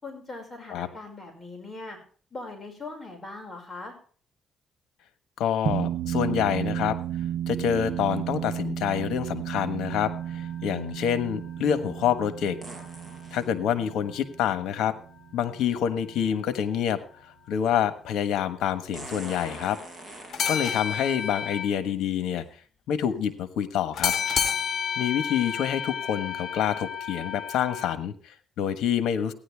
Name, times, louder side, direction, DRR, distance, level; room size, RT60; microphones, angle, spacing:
voice 1, 0.0-2.0 2.3-3.9, left 3 dB, 20° left, 1 dB, 5.4 m, -40 dB
voice 2, 5.4-7.0 7.5-12.6 13.3-14.9 15.3-17.0 17.5-19.8 20.5-22.4 22.9-24.1 25.0-29.3, left 9 dB, 85° left, 12 dB, 1.3 m, -27 dB
sound 1, 5.7-16.3, right 10 dB, 75° right, 0.8 m, -33 dB
sound 2, 9.9-13.2 13.5-13.6 20.3-21.8 23.9-28.0, left 7 dB, 60° left, 1.8 m, -31 dB
sound 3, 12.6-13.5 15.5-15.6 18.9-21.4 22.4-22.5 23.1-23.4 24.3-24.4, right 1 dB, 5° right, 5.3 m, -43 dB
16.5 x 10.5 x 3.5 m, 0.42 s
cardioid pair, 90°, 0 cm